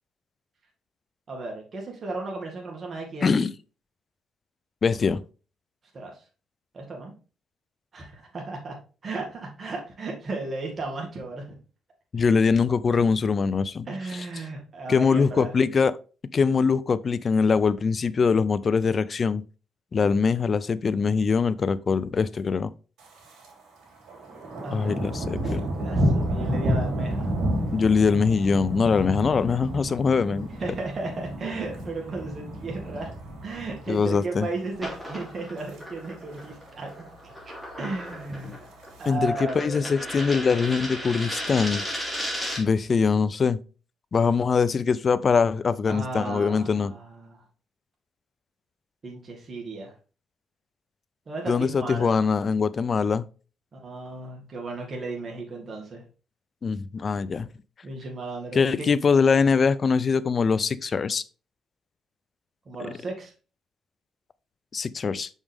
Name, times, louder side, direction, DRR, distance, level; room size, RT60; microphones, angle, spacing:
voice 1, 1.3-3.5 5.9-6.2 6.7-7.1 7.9-8.8 9.0-11.6 13.9-15.5 24.6-25.4 25.8-27.3 30.6-33.1 33.4-37.1 37.5-38.6 39.0-39.9 45.9-47.4 49.0-49.9 51.3-52.2 53.7-56.0 57.8-58.9 62.7-63.3, right 3 dB, 40° right, 2.1 m, -35 dB
voice 2, 3.2-3.5 4.8-5.2 12.1-13.9 14.9-15.9 16.3-19.4 19.9-22.7 24.7-25.6 27.7-30.5 33.9-34.5 39.1-41.8 42.6-43.6 44.1-46.9 51.5-53.2 56.6-57.5 58.5-61.2 64.7-65.3, left 5 dB, 40° left, 0.4 m, -23 dB
Thunder, 23.0-23.5 23.8-34.2 34.5-34.9 35.3-35.8 36.1-36.2 36.3-36.4 36.8-37.4 38.1-39.1, equal, 80° right, 2.8 m, -30 dB
sound 1, 34.7-42.8, equal, ahead, 3.1 m, -35 dB
6.0 x 5.4 x 3.5 m
cardioid pair, 90°, 0 cm